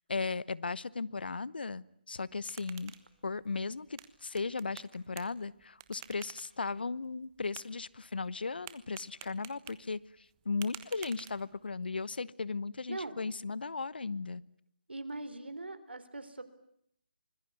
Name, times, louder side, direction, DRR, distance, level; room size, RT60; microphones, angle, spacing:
voice 1, 0.1-2.9 3.2-14.4, left 4 dB, 65° left, 21 dB, 1.0 m, -36 dB
sound 1, 2.1-11.8, right 13 dB, 20° right, 1.3 m, -53 dB
voice 2, 14.9-16.4, right 2 dB, 80° right, 12 dB, 3.6 m, -41 dB
25.5 x 20.5 x 9.6 m, 0.71 s
figure-of-eight pair, 155°, 6 cm